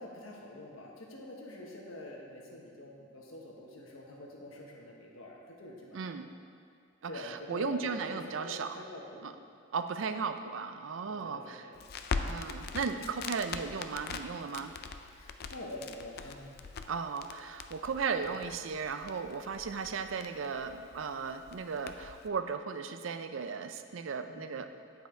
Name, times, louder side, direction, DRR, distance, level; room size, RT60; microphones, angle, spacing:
voice 1, 0.0-6.1 7.1-9.4 11.1-11.8 15.1-16.8 24.3-24.6, left 1 dB, 90° left, -1 dB, 1.3 m, -46 dB
voice 2, 5.9-6.3 7.0-8.8 9.2-9.3 9.7-11.6 12.2-14.7 16.9-24.7, right 5 dB, 70° right, 9 dB, 0.5 m, -36 dB
Crackle, 11.7-22.3, left 4 dB, 50° left, 0.4 m, -42 dB
9.1 x 5.6 x 4.4 m, 2.2 s
head